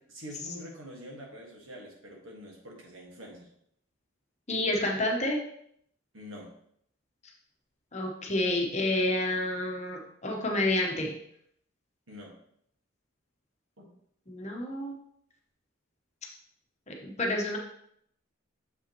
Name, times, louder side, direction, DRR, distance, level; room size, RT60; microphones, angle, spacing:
voice 1, 0.1-3.5 6.1-6.5 12.1-12.3 13.8-13.9, equal, 65° right, -1 dB, 1.6 m, -45 dB
voice 2, 4.5-5.4 7.9-11.2 14.3-14.9 16.9-17.6, left 1 dB, 35° left, 1 dB, 1.0 m, -29 dB
7.0 x 5.5 x 3.0 m, 0.69 s
head